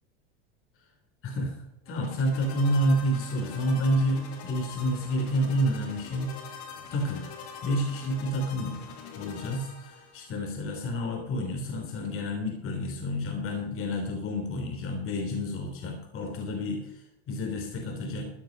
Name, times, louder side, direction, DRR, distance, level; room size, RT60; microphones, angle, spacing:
voice 1, 1.2-1.6 1.9-6.6 6.9-7.3 7.6-8.8 9.1-18.3, equal, 40° left, 2 dB, 3.3 m, -29 dB
sound 1, 1.8-10.4, left 6 dB, 75° left, 2.5 m, -44 dB
14.0 x 9.4 x 5.2 m, 0.81 s
supercardioid pair, 105°, 32 cm